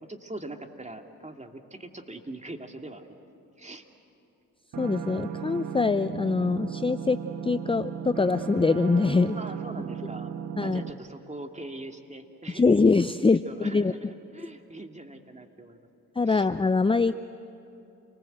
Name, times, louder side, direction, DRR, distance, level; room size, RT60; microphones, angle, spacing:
voice 1, 0.1-3.1 3.6-3.8 9.3-10.3 10.6-12.8 13.4-15.8 16.3-16.5, right 2 dB, 20° right, 4 dB, 2.4 m, -42 dB
sound 1, 4.7-10.9, right 8 dB, 60° right, 1.2 m, -36 dB
voice 2, 4.8-9.4 10.6-10.8 12.5-13.9 16.2-17.2, left 4 dB, 15° left, 12 dB, 0.6 m, -23 dB
29.0 x 20.0 x 8.0 m, 2.8 s
hypercardioid pair, 45°, 33 cm